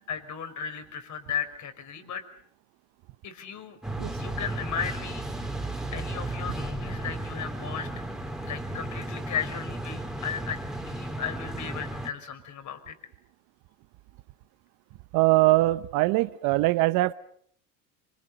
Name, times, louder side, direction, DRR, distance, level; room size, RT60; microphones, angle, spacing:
voice 1, 0.1-2.2 3.2-3.8 4.2-5.3 5.9-7.9 8.5-13.0, left 7 dB, 45° left, 9 dB, 5.6 m, -35 dB
sound 1, 3.8-12.1, right 1 dB, ahead, 3.5 m, -34 dB
voice 2, 15.1-17.1, right 19 dB, 60° right, 13 dB, 1.0 m, -22 dB
27.5 x 26.0 x 6.8 m, 0.64 s
hypercardioid pair, 80°, 40 cm